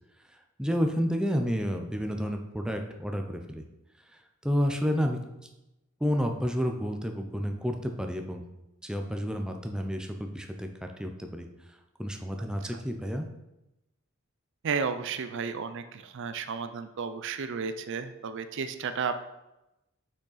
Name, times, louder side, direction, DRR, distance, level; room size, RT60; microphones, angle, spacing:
voice 1, 0.6-3.6 4.4-5.2 6.0-8.4 8.8-11.5 12.0-13.3, equal, 5° right, 4 dB, 0.5 m, -30 dB
voice 2, 14.6-19.2, right 5 dB, 60° right, 10 dB, 0.5 m, -33 dB
6.4 x 6.2 x 4.1 m, 0.94 s
head